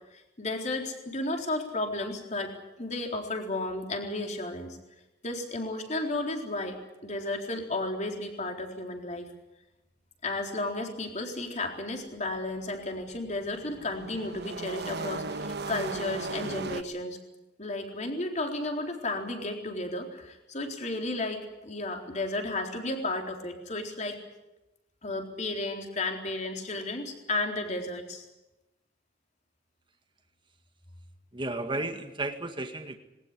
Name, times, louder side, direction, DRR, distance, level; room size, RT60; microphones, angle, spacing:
voice 1, 0.1-4.8 5.2-9.3 10.2-17.2 17.6-24.2 25.0-28.2, left 2 dB, 40° left, 3 dB, 4.0 m, -33 dB
sound 1, 12.8-16.8, right 3 dB, 65° right, 1.2 m, -36 dB
voice 2, 31.3-33.0, right 2 dB, 25° right, 5 dB, 1.9 m, -33 dB
20.5 x 19.0 x 10.0 m, 0.96 s
head